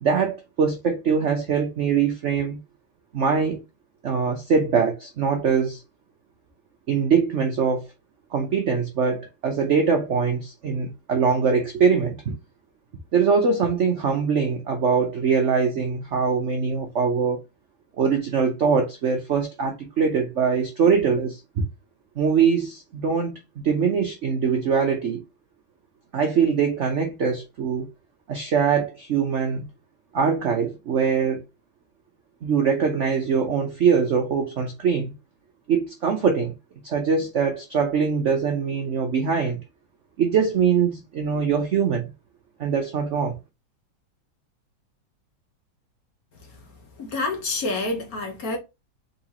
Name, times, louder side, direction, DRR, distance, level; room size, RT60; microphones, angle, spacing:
voice 1, 0.0-2.6 3.1-3.6 4.0-5.8 6.9-7.9 8.3-12.3 13.1-17.4 18.0-21.6 22.2-23.4 23.6-25.2 26.1-27.9 28.3-29.6 30.1-31.4 32.4-35.1 35.7-36.5 36.8-39.6 40.2-42.1 42.6-43.4, right 6 dB, 70° right, 0.6 m, -22 dB
voice 2, 47.0-48.6, left 2 dB, 50° left, 1.5 m, -28 dB
3.9 x 3.8 x 2.9 m
omnidirectional pair, 2.1 m